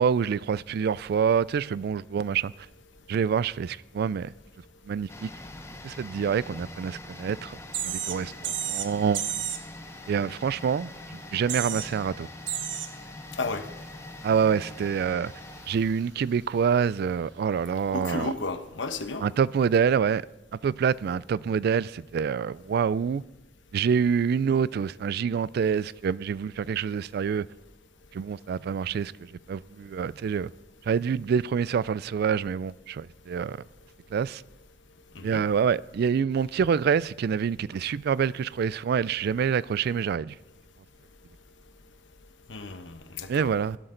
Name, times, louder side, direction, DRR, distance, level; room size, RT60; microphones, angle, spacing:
voice 1, 0.0-2.5 3.1-4.3 4.9-5.3 5.8-7.6 7.8-9.2 10.1-10.9 11.3-12.3 14.2-15.3 15.7-18.3 19.2-20.2 20.6-23.2 23.7-27.5 28.1-29.1 29.5-30.5 30.9-33.6 34.1-34.4 35.2-40.3 43.3-43.8, right 7 dB, 60° right, 0.3 m, -26 dB
sound 1, 5.1-16.8 17.1-17.2, left 1 dB, 15° left, 0.8 m, -44 dB
sound 2, 7.7-8.2 8.4-8.9 9.1-9.6 11.0-11.1 11.3-11.9 12.5-12.9 13.5-13.6 18.2-18.3, right 10 dB, 85° right, 1.1 m, -31 dB
voice 2, 17.9-19.3 35.1-35.4 42.5-43.5, left 3 dB, 80° left, 1.0 m, -33 dB
16.5 x 12.0 x 3.9 m
head